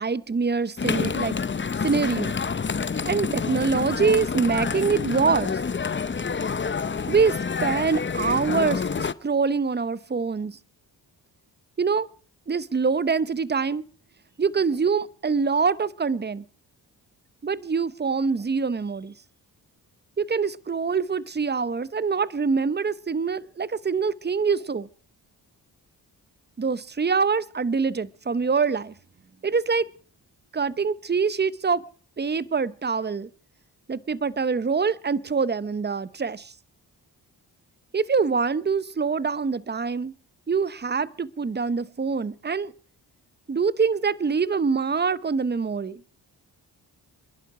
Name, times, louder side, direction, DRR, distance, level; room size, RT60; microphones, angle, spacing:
voice 1, 0.0-1.4 1.8-2.3 3.0-5.6 7.1-10.6 11.8-12.1 12.5-13.8 14.4-16.4 17.4-19.1 20.2-24.9 26.6-28.9 29.4-29.9 30.5-31.8 32.2-33.3 33.9-36.5 37.9-40.1 40.5-42.7 43.5-46.0, right 5 dB, 25° right, 0.8 m, -25 dB
sound 1, 0.8-9.1, left 5 dB, 25° left, 0.7 m, -28 dB
27.5 x 11.0 x 4.8 m
cardioid pair, 55°, 42 cm